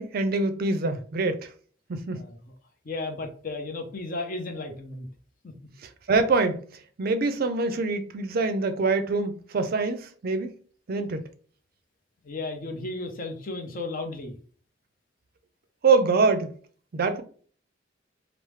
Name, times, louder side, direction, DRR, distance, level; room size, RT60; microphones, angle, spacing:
voice 1, 0.0-1.5 1.9-2.3 5.8-6.6 7.0-10.5 10.9-11.3 15.8-16.5 16.9-17.2, right 3 dB, 55° right, 0.4 m, -25 dB
voice 2, 2.8-5.1 5.4-5.5 12.2-14.3, left 2 dB, 50° left, 0.6 m, -34 dB
3.1 x 2.0 x 3.1 m
head